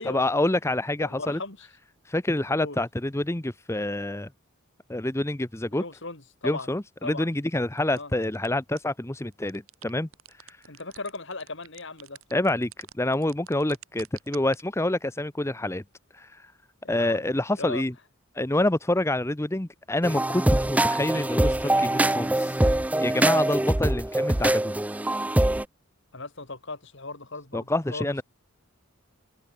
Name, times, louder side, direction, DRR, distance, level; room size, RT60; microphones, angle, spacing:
voice 1, 0.0-1.4 2.1-4.3 4.9-5.8 6.4-10.1 10.5-10.6 12.3-15.8 16.1-16.5 16.9-17.9 18.3-22.6 23.0-24.8 27.5-28.2, left 1 dB, 15° left, 0.8 m, -27 dB
voice 2, 1.0-1.7 2.6-2.8 5.7-6.7 7.0-7.3 7.9-8.1 10.7-12.2 16.8-17.8 26.1-28.2, left 3 dB, 60° left, 3.3 m, -37 dB
sound 1, 7.8-8.5 8.8-8.9 9.2-14.6, right 9 dB, 80° right, 5.1 m, -45 dB
sound 2, 20.0-25.6, right 1 dB, 5° right, 0.4 m, -23 dB
head